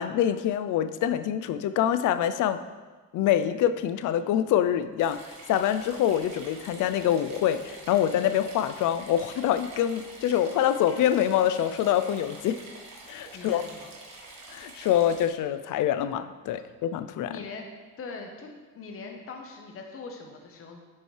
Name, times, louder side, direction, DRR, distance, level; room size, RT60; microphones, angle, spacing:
voice 1, 0.0-2.6 3.1-12.6 13.1-13.6 14.5-17.3, left 10 dB, 90° left, 12 dB, 0.5 m, -25 dB
sound 1, 5.0-15.3, right 2 dB, 65° right, 1.4 m, -47 dB
voice 2, 13.2-13.9 17.2-17.7 18.0-20.8, left 4 dB, 45° left, 2 dB, 1.0 m, -41 dB
10.0 x 5.4 x 3.2 m, 1.3 s
cardioid pair, 130°, 30 cm